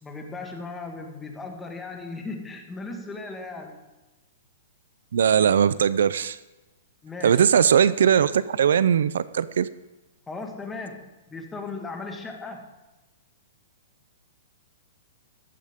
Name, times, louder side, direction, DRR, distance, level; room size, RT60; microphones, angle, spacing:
voice 1, 0.0-3.8 7.0-7.5 10.3-12.7, left 3 dB, 10° left, 3 dB, 1.7 m, -37 dB
voice 2, 5.1-6.4 7.2-9.7, right 8 dB, 80° right, 17 dB, 0.5 m, -20 dB
14.5 x 12.0 x 3.7 m, 1.1 s
hypercardioid pair, 150°, 0 cm